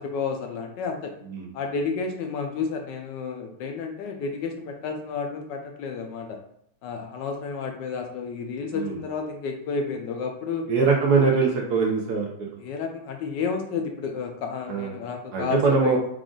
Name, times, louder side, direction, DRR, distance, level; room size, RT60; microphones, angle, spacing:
voice 1, 0.0-1.1 1.5-6.4 6.8-10.6 12.6-16.0, left 5 dB, 75° left, 3 dB, 1.1 m, -31 dB
voice 2, 10.7-12.3 14.7-14.9 15.3-16.0, right 4 dB, 70° right, -1 dB, 1.0 m, -22 dB
4.9 x 2.4 x 3.7 m, 0.73 s
omnidirectional pair, 2.2 m